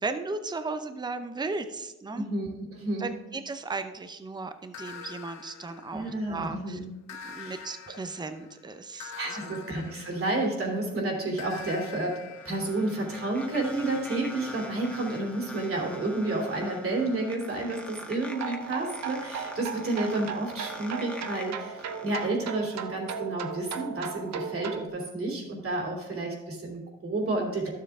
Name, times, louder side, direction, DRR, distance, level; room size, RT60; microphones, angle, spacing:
voice 1, 0.0-2.3 3.0-6.8 7.2-9.6, right 3 dB, 15° right, 9 dB, 0.7 m, -36 dB
voice 2, 2.1-3.1 5.9-6.9 7.4-7.6 8.9-12.2 12.4-27.7, right 2 dB, 45° right, 0 dB, 3.0 m, -31 dB
sound 1, 4.7-6.4 7.1-10.8 11.4-15.1, left 6 dB, 65° left, 0.8 m, -45 dB
sound 2, 11.9-22.3, equal, 5° left, 1.6 m, -43 dB
sound 3, 18.3-24.9, right 6 dB, 60° right, 0.8 m, -37 dB
12.0 x 7.4 x 3.6 m, 1.0 s
cardioid pair, 90°, 30 cm